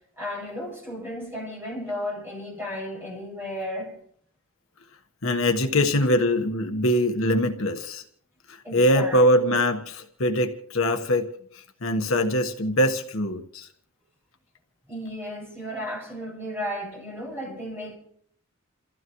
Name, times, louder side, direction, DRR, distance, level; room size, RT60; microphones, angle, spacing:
voice 1, 0.2-4.0 8.6-9.2 14.9-18.0, left 1 dB, 10° right, 6.9 m, -34 dB
voice 2, 5.2-8.0 8.5-11.3 11.5-13.7, left 1 dB, 70° left, 1.4 m, -23 dB
29.0 x 15.0 x 3.1 m
head